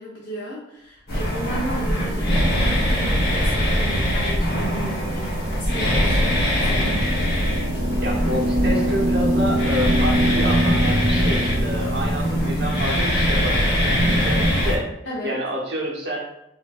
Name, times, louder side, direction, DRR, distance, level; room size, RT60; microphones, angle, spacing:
voice 1, 0.0-7.1 15.0-15.4, equal, 85° left, -5 dB, 0.6 m, -34 dB
sound 1, 1.1-14.8, equal, 60° left, 1.0 m, -22 dB
sound 2, 1.8-13.5, equal, 40° right, 0.4 m, -27 dB
voice 2, 8.0-14.9 15.2-16.3, equal, 65° right, -2 dB, 0.9 m, -28 dB
4.4 x 2.6 x 2.3 m, 0.80 s
head